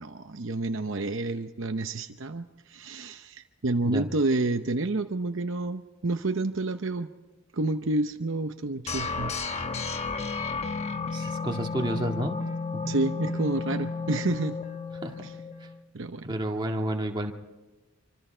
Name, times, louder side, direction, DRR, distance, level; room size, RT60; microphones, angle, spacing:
voice 1, 0.0-7.1 7.5-9.4 12.9-14.6 15.9-16.4, right 2 dB, 60° right, 7 dB, 0.8 m, -29 dB
sound 1, 8.9-15.8, left 4 dB, 30° left, 1.1 m, -33 dB
voice 2, 11.1-12.4 12.7-12.9 15.0-15.2 15.6-15.7 16.2-17.3, right 1 dB, 20° right, 1 dB, 1.9 m, -30 dB
26.5 x 25.0 x 4.5 m, 1.2 s
head